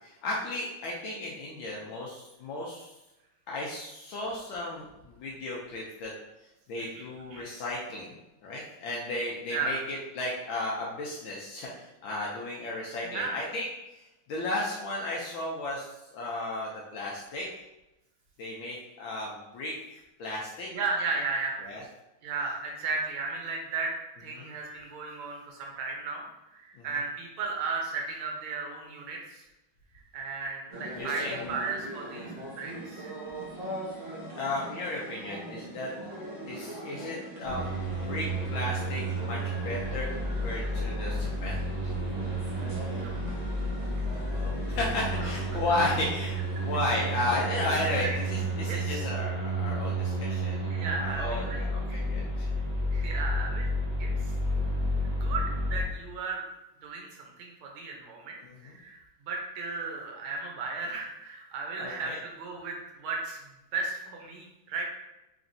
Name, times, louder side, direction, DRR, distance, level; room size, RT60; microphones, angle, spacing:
voice 1, 0.0-2.9 3.5-6.1 6.7-8.2 8.4-13.7 13.9-17.5 18.4-20.7 21.6-21.8 24.4-24.5 26.7-26.8 30.9-31.5 34.4-35.9 36.5-37.6 37.9-41.9 44.3-50.6 51.0-52.5 58.4-58.8 61.8-62.2, left 2 dB, 75° left, -3 dB, 1.4 m, -34 dB
voice 2, 13.0-13.4 20.7-21.6 22.2-23.9 24.2-26.2 26.5-29.4 29.9-33.2 42.9-43.1 45.2-45.3 47.7-48.2 48.7-49.0 50.5-52.0 52.9-53.7 54.0-54.3 55.2-55.4 55.7-56.4 56.8-63.4 63.7-64.8, right 4 dB, 80° right, 0 dB, 1.6 m, -35 dB
sound 1, 30.7-48.8, right 1 dB, 40° right, 0.7 m, -42 dB
sound 2, 37.4-55.8, right 1 dB, 15° right, 1.0 m, -31 dB
4.0 x 3.4 x 2.6 m, 0.96 s
omnidirectional pair, 2.2 m